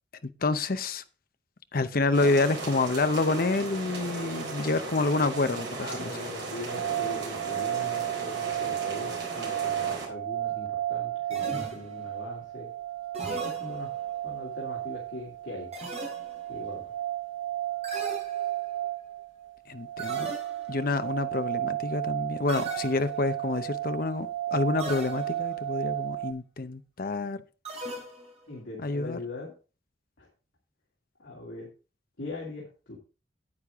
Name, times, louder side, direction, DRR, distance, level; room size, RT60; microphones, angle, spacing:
voice 1, 0.2-1.0 1.7-6.1 19.7-20.3 20.7-27.4 28.8-29.2, left 3 dB, 50° left, 0.7 m, -28 dB
sound 1, 2.1-10.1, right 3 dB, 70° right, 3.6 m, -36 dB
voice 2, 5.8-12.7 13.4-14.0 14.2-15.7 16.5-16.9 28.5-29.5 30.2-30.3 31.2-31.7 32.2-33.0, left 2 dB, 80° left, 2.7 m, -41 dB
sound 2, 6.7-26.3, right 14 dB, 90° right, 0.6 m, -33 dB
sound 3, 11.3-12.2 13.1-14.2 15.7-16.6 17.8-18.8 20.0-20.8 22.5-23.4 24.8-25.6 27.7-28.5, right 1 dB, 35° right, 3.5 m, -39 dB
9.7 x 8.5 x 3.6 m
head